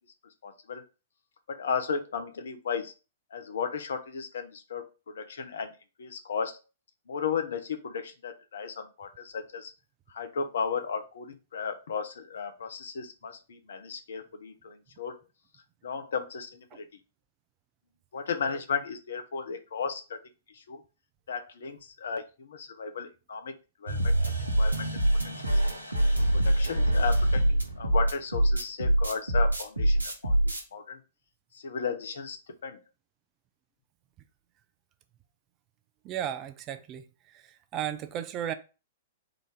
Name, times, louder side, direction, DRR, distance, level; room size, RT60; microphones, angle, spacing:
voice 1, 0.4-0.8 1.5-2.9 3.3-5.7 6.0-6.6 7.1-9.7 10.1-15.2 15.8-16.9 18.1-20.2 20.5-20.8 21.3-23.5 23.8-25.0 26.4-31.0 31.5-32.4 32.6-32.8, left 6 dB, 60° left, 0.7 m, -35 dB
sound 1, 23.9-30.6, right 1 dB, 85° right, 0.9 m, -24 dB
voice 2, 36.0-37.0 37.3-38.5, right 10 dB, 30° right, 0.4 m, -35 dB
3.9 x 2.6 x 4.8 m
figure-of-eight pair, 110°, 0 cm